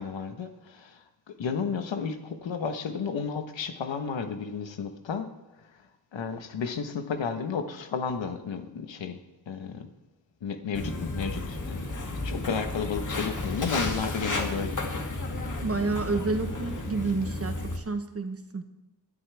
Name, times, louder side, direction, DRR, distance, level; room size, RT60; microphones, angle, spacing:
voice 1, 0.0-5.3 6.1-9.2 9.5-9.9 10.4-11.9 12.2-15.0, left 6 dB, 85° left, 7 dB, 1.3 m, -32 dB
Walk footsteps, 10.7-17.8, left 2 dB, 45° left, 2.1 m, -33 dB
voice 2, 15.6-18.6, right 3 dB, 30° right, 7 dB, 1.1 m, -30 dB
25.0 x 9.7 x 3.5 m, 1.0 s
wide cardioid pair, 105°, 44 cm